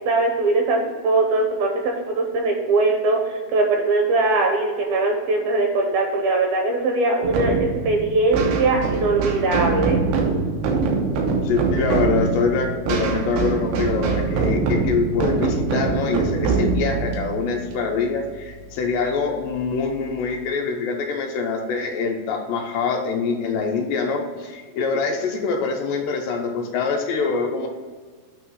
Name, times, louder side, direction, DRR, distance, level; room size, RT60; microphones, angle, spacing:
voice 1, 0.1-10.0, right 3 dB, 75° right, 1 dB, 2.4 m, -21 dB
sound 1, 7.2-18.6, right 4 dB, 90° right, 3.2 m, -23 dB
voice 2, 11.4-27.7, left 4 dB, 80° left, 2 dB, 3.0 m, -24 dB
9.0 x 3.1 x 6.2 m, 1.5 s
omnidirectional pair, 5.0 m